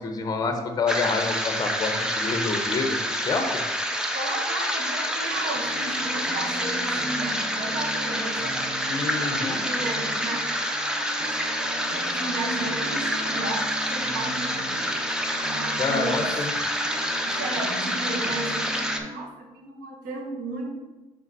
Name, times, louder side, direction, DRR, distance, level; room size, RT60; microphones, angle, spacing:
voice 1, 0.0-3.5 8.9-9.6 15.8-16.5, left 4 dB, 30° left, 5 dB, 0.8 m, -27 dB
sound 1, 0.9-19.0, equal, 5° right, 0.7 m, -28 dB
voice 2, 4.1-8.5 9.3-14.8 15.5-16.3 17.4-20.7, right 2 dB, 80° right, -1 dB, 1.5 m, -34 dB
sound 2, 5.3-19.1, right 1 dB, 50° right, 0.7 m, -39 dB
5.3 x 4.8 x 4.1 m, 1.1 s
cardioid pair, 95°, 13 cm